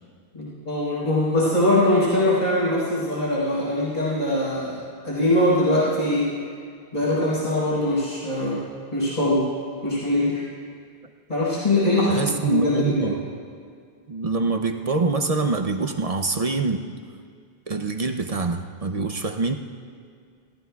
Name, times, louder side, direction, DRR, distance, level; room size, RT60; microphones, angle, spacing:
voice 1, 0.3-6.3 6.9-8.6 8.9-9.5 9.8-10.4 11.3-13.1, left 1 dB, 45° left, -9 dB, 4.4 m, -22 dB
voice 2, 12.1-13.2 14.1-16.9 17.7-19.5, right 3 dB, 40° right, 5 dB, 0.6 m, -25 dB
29.0 x 13.5 x 2.3 m, 2.2 s
omnidirectional pair, 1.1 m